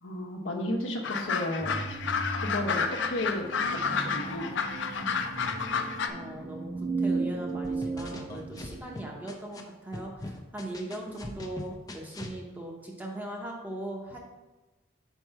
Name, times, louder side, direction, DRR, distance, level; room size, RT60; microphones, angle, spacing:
voice 1, 0.0-1.8 2.3-4.5, left 1 dB, 85° left, -1 dB, 1.2 m, -33 dB
sound 1, 1.0-6.1, left 5 dB, 70° left, 0.5 m, -30 dB
sound 2, 1.6-9.1, right 3 dB, 70° right, 1.1 m, -36 dB
voice 2, 6.1-14.2, right 1 dB, 10° right, -1 dB, 0.9 m, -39 dB
sound 3, 7.6-9.6 9.9-12.4, left 2 dB, 20° left, 0.5 m, -41 dB
4.7 x 4.6 x 5.6 m, 1.1 s
head